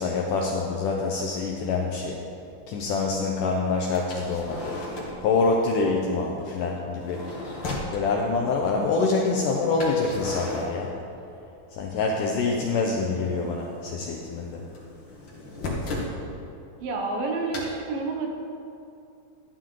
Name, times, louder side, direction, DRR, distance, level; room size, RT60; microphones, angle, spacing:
voice 1, 0.0-2.2 2.7-4.8 5.2-7.3 7.9-10.9 11.7-14.6, left 4 dB, 75° left, 0 dB, 2.0 m, -26 dB
sound 1, 3.9-5.3 6.8-8.0 9.8-11.5 11.7-12.6 12.8-16.1 17.5-17.7, left 2 dB, 40° left, 1.8 m, -36 dB
voice 2, 16.8-18.3, right 3 dB, 70° right, 1 dB, 2.5 m, -29 dB
13.5 x 11.0 x 3.8 m, 2.7 s
omnidirectional pair, 4.6 m